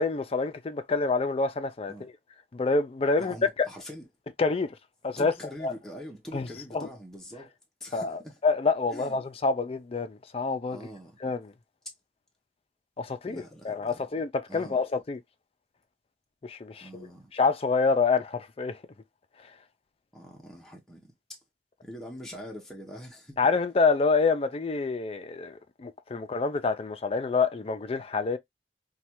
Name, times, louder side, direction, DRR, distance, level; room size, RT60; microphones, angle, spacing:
voice 1, 0.0-2.1 2.5-3.7 4.4-4.7 5.0-5.3 5.6-5.7 6.3-6.5 6.7-6.9 7.9-10.8 11.2-11.5 13.0-15.2 16.4-17.1 17.3-18.8 23.4-28.4, left 4 dB, 35° left, 0.4 m, -27 dB
voice 2, 3.2-4.1 5.2-7.5 7.8-8.4 8.9-9.2 10.7-11.2 13.3-14.1 14.5-14.8 16.8-17.3 20.1-21.4 21.8-23.4, equal, ahead, 0.7 m, -44 dB
3.1 x 2.3 x 2.9 m
head